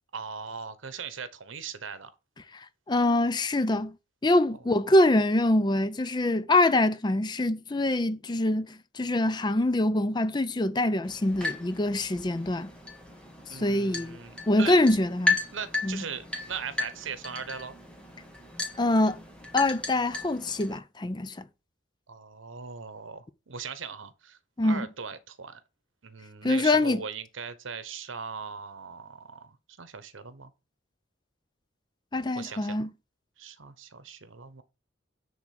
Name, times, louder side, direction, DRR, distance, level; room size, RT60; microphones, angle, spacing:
voice 1, 0.1-2.1 13.5-14.8 15.5-17.7 22.1-25.6 26.0-30.5 32.3-32.9 33.4-34.6, right 6 dB, 80° right, 1.0 m, -39 dB
voice 2, 2.9-4.0 4.2-12.7 13.5-14.2 14.5-15.4 15.8-16.0 18.8-19.2 19.5-21.4 24.6-24.9 26.4-27.0 32.1-32.9, left 1 dB, 20° left, 0.4 m, -24 dB
sound 1, 11.0-20.8, left 3 dB, 5° left, 1.6 m, -35 dB
9.7 x 3.7 x 5.9 m
head